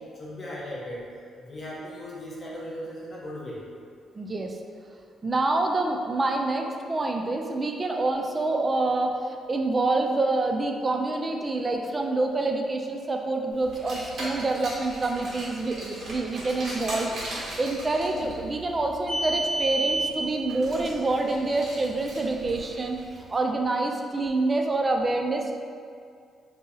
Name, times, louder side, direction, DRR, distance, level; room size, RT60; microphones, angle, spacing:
voice 1, 0.1-1.0 1.4-3.6, equal, 35° left, -5 dB, 0.9 m, -37 dB
voice 2, 4.2-4.6 5.2-17.1 17.6-23.0 23.3-25.6, right 2 dB, 25° right, 3 dB, 0.4 m, -27 dB
Car, 13.7-23.2, right 2 dB, 55° right, 1.3 m, -34 dB
2.8 x 2.8 x 3.9 m, 2.2 s
cardioid pair, 90°, 0 cm